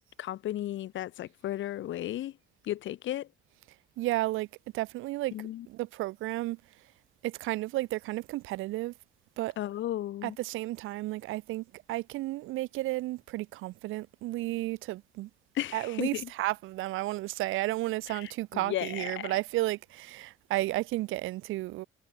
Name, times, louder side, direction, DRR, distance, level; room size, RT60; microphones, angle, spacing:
voice 1, 0.0-2.3 2.6-3.3 5.3-5.7 9.6-10.4 15.5-16.3 18.1-19.3, left 13 dB, 75° left, 1.1 m, -35 dB
voice 2, 4.0-4.5 4.7-5.3 5.7-6.6 7.2-8.9 9.4-9.5 10.2-15.3 15.7-21.9, right 18 dB, 85° right, 0.6 m, -32 dB
cardioid pair, 90°, 20 cm